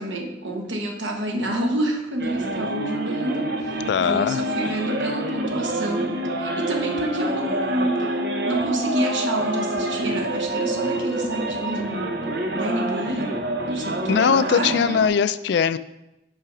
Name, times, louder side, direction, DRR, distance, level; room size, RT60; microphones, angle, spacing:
voice 1, 0.0-8.1 8.4-12.2 12.5-13.4 13.6-14.8, right 1 dB, 90° right, 2 dB, 1.1 m, -28 dB
sound 1, 2.2-15.1, right 1 dB, 60° right, 0.8 m, -27 dB
voice 2, 3.9-4.4 14.1-15.8, left 7 dB, 65° left, 14 dB, 0.3 m, -20 dB
5.8 x 5.5 x 5.0 m, 0.94 s
head